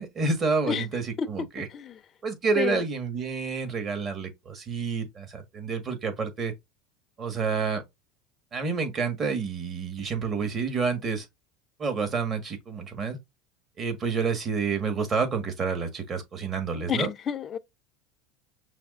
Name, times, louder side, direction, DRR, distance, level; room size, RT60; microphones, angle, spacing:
voice 1, 0.0-1.7 2.2-6.5 7.2-7.8 8.5-11.2 11.8-13.2 13.8-17.1, right 5 dB, 35° right, 1.7 m, -29 dB
voice 2, 16.9-17.6, left 8 dB, 35° left, 0.5 m, -29 dB
5.9 x 2.8 x 2.6 m
hypercardioid pair, 95°, 0 cm